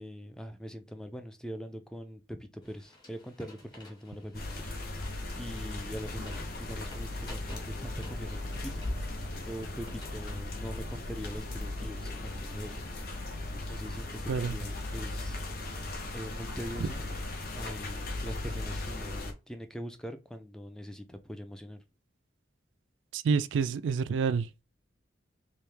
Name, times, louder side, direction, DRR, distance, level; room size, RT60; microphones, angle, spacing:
voice 1, 0.0-4.7 5.4-8.9 9.5-12.8 13.5-15.4 16.1-17.1 17.5-21.8, equal, 5° left, 0.3 m, -42 dB
sound 1, 2.6-10.4, left 2 dB, 20° left, 1.2 m, -54 dB
sound 2, 4.3-19.3, left 2 dB, 50° left, 0.8 m, -37 dB
voice 2, 23.1-24.6, right 5 dB, 80° right, 0.3 m, -28 dB
3.1 x 2.7 x 3.3 m
head